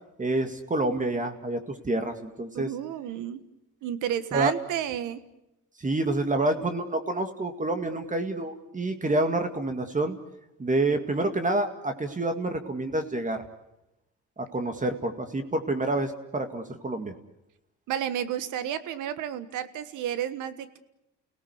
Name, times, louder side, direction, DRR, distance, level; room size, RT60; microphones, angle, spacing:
voice 1, 0.2-2.7 4.3-4.5 5.8-10.2 10.6-13.4 14.4-17.1, right 2 dB, 25° right, 7 dB, 2.1 m, -28 dB
voice 2, 2.5-3.4 3.8-5.2 17.9-20.8, right 10 dB, 90° right, 13 dB, 1.5 m, -31 dB
30.0 x 18.0 x 8.0 m, 0.89 s
cardioid pair, 90°, 30 cm